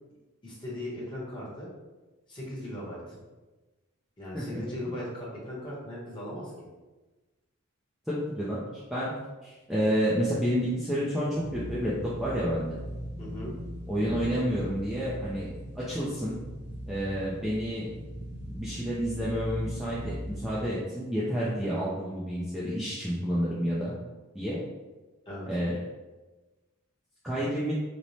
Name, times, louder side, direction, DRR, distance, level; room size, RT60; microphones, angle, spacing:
voice 1, 0.4-1.7 2.3-3.2 4.2-6.5 13.2-13.5 25.3-25.4, left 1 dB, 20° left, -6 dB, 0.8 m, -38 dB
voice 2, 8.1-8.6 8.9-9.1 9.4-12.8 13.9-15.5 15.8-16.4 16.9-17.9 18.5-23.9 24.3-24.6 25.4-25.8 27.2-27.7, equal, ahead, -9 dB, 0.3 m, -29 dB
sound 1, 11.3-20.7, equal, 50° right, 0.9 m, -40 dB
3.0 x 2.0 x 2.6 m, 1.2 s
head